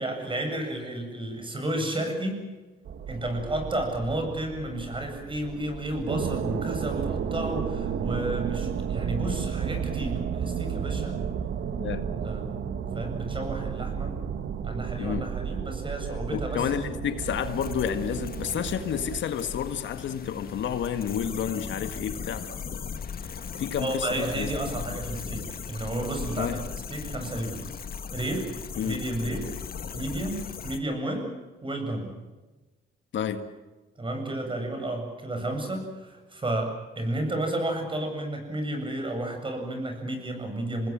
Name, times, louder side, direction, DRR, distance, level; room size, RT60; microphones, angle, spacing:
voice 1, 0.0-2.4 3.1-11.2 12.2-12.5 12.9-14.2 14.6-16.8 23.8-27.8 28.1-28.5 28.8-29.5 29.9-32.1 34.0-40.9, right 1 dB, 25° right, 8.0 m, -32 dB
sound 1, 2.9-19.2, right 7 dB, 60° right, 1.6 m, -32 dB
voice 2, 15.0-15.3 16.3-22.6 23.6-24.5 26.4-26.6 28.8-29.0 33.1-33.5, left 8 dB, 70° left, 1.8 m, -30 dB
sound 2, 17.2-30.8, left 6 dB, 50° left, 1.8 m, -38 dB
27.5 x 20.0 x 7.6 m
cardioid pair, 90°, 20 cm